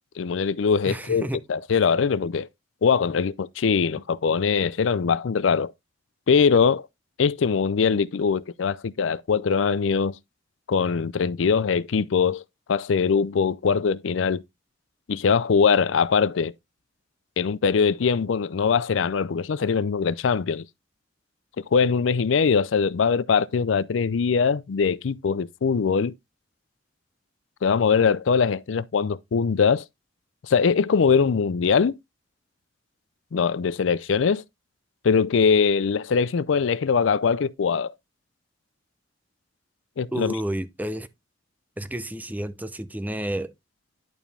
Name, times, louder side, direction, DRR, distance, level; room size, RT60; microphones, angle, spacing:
voice 1, 0.2-2.5 2.8-5.7 6.3-6.9 7.2-10.2 10.7-12.4 12.7-14.4 15.1-16.5 17.4-20.6 21.7-26.1 27.6-29.8 30.5-32.0 33.3-34.4 35.0-37.9 40.0-40.4, left 5 dB, 85° left, 0.5 m, -22 dB
voice 2, 0.9-1.4 40.1-41.1 41.8-43.5, right 1 dB, 10° right, 0.6 m, -30 dB
11.0 x 4.8 x 3.4 m
head